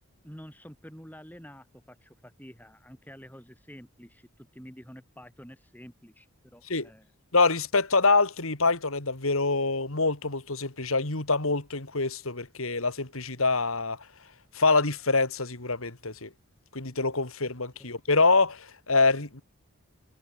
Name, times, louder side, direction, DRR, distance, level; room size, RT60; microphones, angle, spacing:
voice 1, 0.2-7.1 17.8-17.9, equal, 5° left, 6.4 m, -48 dB
voice 2, 7.3-14.0 14.5-16.3 16.7-19.4, left 3 dB, 70° left, 2.7 m, -25 dB
head